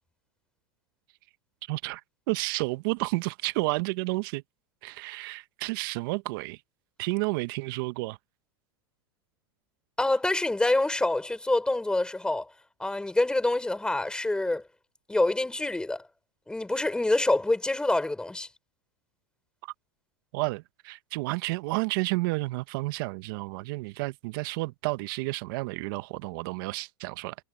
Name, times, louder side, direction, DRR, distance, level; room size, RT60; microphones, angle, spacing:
voice 1, 1.7-2.0 2.3-4.4 4.8-6.6 7.0-8.2 19.6-19.7 20.3-27.3, right 24 dB, 60° right, 1.0 m, -31 dB
voice 2, 10.0-12.5 12.8-14.6 15.1-16.0 16.5-18.5, left 2 dB, 5° left, 3.5 m, -26 dB
hypercardioid pair, 110°, 13 cm